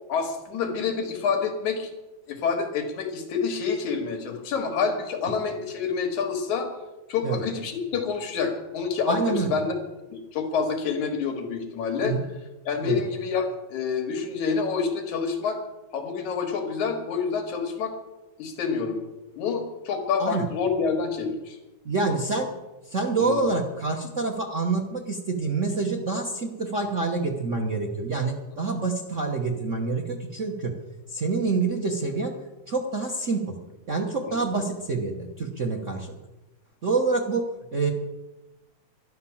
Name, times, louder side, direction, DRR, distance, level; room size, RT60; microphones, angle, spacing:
voice 1, 0.1-1.9 2.3-6.7 7.1-9.2 9.5-9.8 10.1-12.2 12.7-15.6 15.9-17.9 18.4-19.0 19.4-21.6 23.2-23.4 34.3-34.4, left 5 dB, 80° left, 5 dB, 3.1 m, -27 dB
voice 2, 9.1-9.5 12.0-12.2 12.8-13.0 20.2-20.5 21.8-22.5 22.9-30.7 31.1-32.3 32.7-33.5 33.9-36.1 36.8-37.4 37.7-37.9, right 3 dB, 80° right, 2 dB, 0.6 m, -27 dB
12.0 x 11.0 x 7.1 m, 1.0 s
omnidirectional pair, 3.4 m